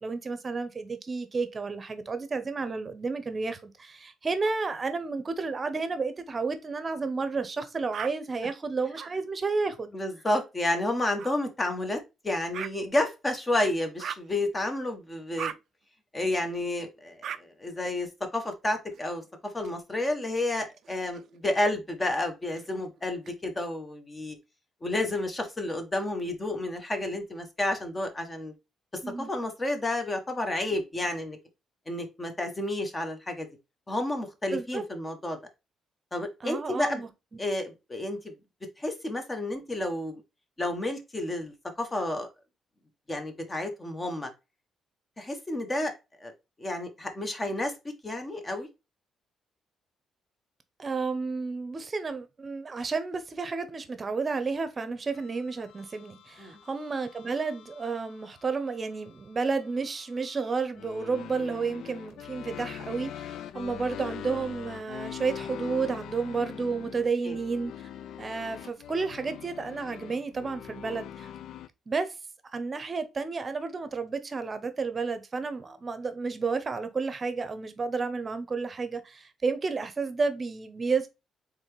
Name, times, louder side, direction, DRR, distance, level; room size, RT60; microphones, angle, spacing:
voice 1, 0.0-10.0 29.0-29.3 34.5-34.8 36.4-37.1 50.8-67.7 68.2-71.3 71.9-72.1 72.5-81.1, right 4 dB, 35° right, 0.8 m, -31 dB
sound 1, 7.9-8.1 8.9-9.1 11.2-11.3 12.5-12.7 14.0-14.3 15.4-15.6 17.2-17.4 18.9-19.7 20.7-21.6 22.5-23.3, right 9 dB, 65° right, 0.4 m, -39 dB
voice 2, 9.9-15.5 16.1-19.2 19.5-24.4 24.8-28.5 29.2-31.4 31.9-33.5 33.9-35.4 36.1-37.0 37.4-38.3 38.8-40.2 40.6-42.3 43.1-44.3 45.2-45.9 46.2-46.3 46.6-47.7 48.0-48.7 56.4-56.5 67.2-67.4, left 1 dB, 25° left, 1.3 m, -30 dB
sound 2, 55.1-71.7, left 10 dB, 75° left, 0.4 m, -43 dB
4.1 x 3.4 x 3.2 m
cardioid pair, 90°, 0 cm